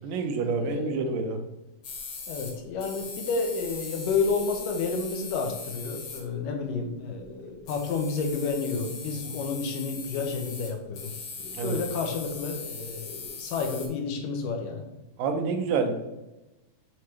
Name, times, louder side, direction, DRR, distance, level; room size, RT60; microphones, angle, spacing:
voice 1, 0.0-1.4 9.3-9.4 11.5-11.8 15.2-15.9, right 4 dB, 85° right, 5 dB, 2.4 m, -28 dB
voice 2, 0.6-1.0 2.3-14.9, left 4 dB, 80° left, 3 dB, 2.5 m, -30 dB
sound 1, 1.8-2.5 2.8-6.2 7.2-7.3 7.6-13.9, left 4 dB, 55° left, 1.5 m, -40 dB
7.7 x 4.4 x 3.2 m, 1.0 s
omnidirectional pair, 3.9 m